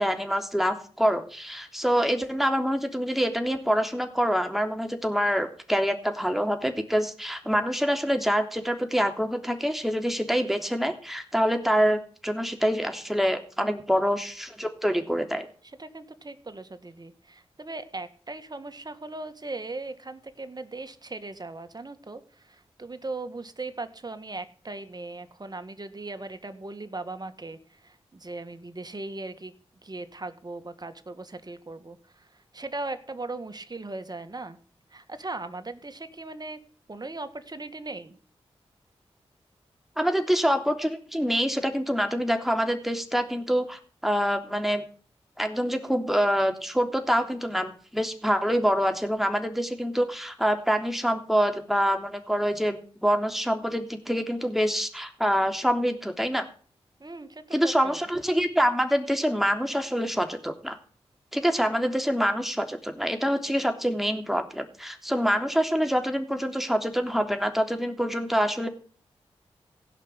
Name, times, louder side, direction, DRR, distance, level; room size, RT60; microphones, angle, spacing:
voice 1, 0.0-15.5 40.0-44.8 45.4-56.4 57.5-60.8 61.3-68.7, equal, ahead, 5 dB, 3.3 m, -26 dB
voice 2, 15.6-29.5 29.8-34.6 34.9-36.6 36.9-38.2 57.0-58.0, right 2 dB, 35° right, 9 dB, 2.1 m, -38 dB
16.5 x 6.0 x 10.0 m, 0.43 s
cardioid pair, 45°, 11 cm